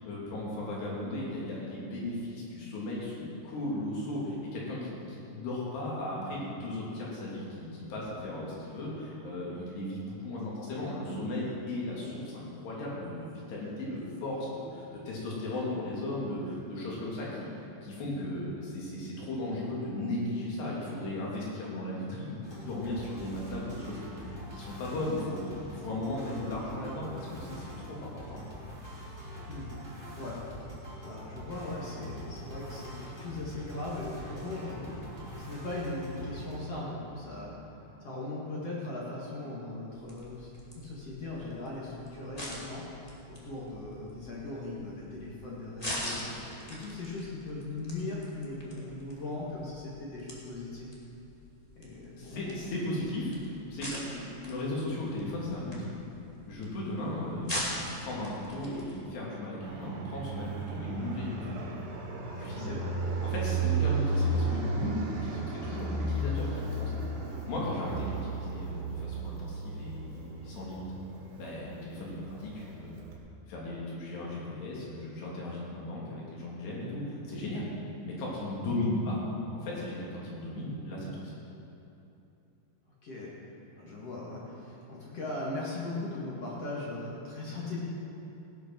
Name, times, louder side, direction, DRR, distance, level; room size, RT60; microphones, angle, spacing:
voice 1, 0.0-17.5 17.8-28.4 52.2-53.4 53.7-55.9 56.5-61.7 62.4-62.7 63.2-67.1 67.5-70.8 71.4-73.0 73.5-77.7 78.0-79.2 79.5-81.3, left 1 dB, 75° left, -5 dB, 5.0 m, -36 dB
sound 1, 22.4-36.7, equal, 10° right, 2.2 m, -44 dB
voice 2, 31.0-35.0 35.3-37.7 38.0-40.5 40.8-42.8 43.3-50.9 51.8-52.7 62.6-63.0 78.7-78.9 83.0-83.3 83.8-87.8, left 2 dB, 45° left, -5 dB, 2.4 m, -39 dB
sound 2, 39.9-59.0, equal, 15° left, 1.2 m, -43 dB
Fixed-wing aircraft airplane, 59.6-73.1, right 2 dB, 80° right, 3.8 m, -34 dB
17.5 x 8.4 x 6.2 m, 2.8 s
omnidirectional pair, 4.8 m